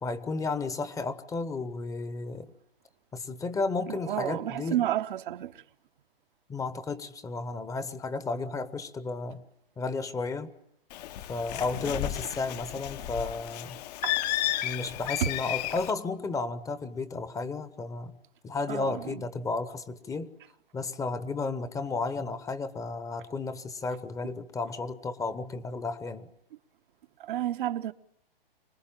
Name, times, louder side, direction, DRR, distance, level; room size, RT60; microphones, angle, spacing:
voice 1, 0.0-2.5 3.1-4.8 6.5-9.4 9.8-10.5 11.3-13.8 14.6-18.1 18.4-20.3 20.7-26.3, left 3 dB, 10° left, 1.0 m, -33 dB
voice 2, 3.9-5.6 14.0-14.2 18.7-19.2 27.2-27.9, right 12 dB, 60° right, 1.0 m, -31 dB
Bird, 10.9-15.9, left 14 dB, 45° left, 1.1 m, -33 dB
25.5 x 20.0 x 8.9 m
hypercardioid pair, 130°, 30 cm